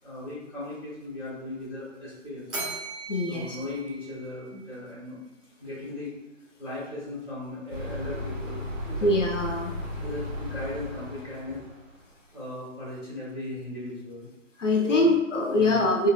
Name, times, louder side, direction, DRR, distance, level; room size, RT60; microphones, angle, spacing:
voice 1, 0.0-2.7 3.3-5.2 5.6-6.1 6.6-9.1 9.9-11.6 12.3-14.3 14.8-15.1 15.5-15.8, left 1 dB, ahead, -24 dB, 0.8 m, -37 dB
Bell, 2.5-4.8, right 3 dB, 40° right, 1.0 m, -38 dB
voice 2, 3.1-3.6 9.0-9.7 14.6-16.1, left 2 dB, 65° left, 1 dB, 0.8 m, -23 dB
sound 1, 7.7-12.0, left 1 dB, 65° right, 1.1 m, -35 dB
3.7 x 2.8 x 2.2 m, 1.0 s
hypercardioid pair, 160°, 40 cm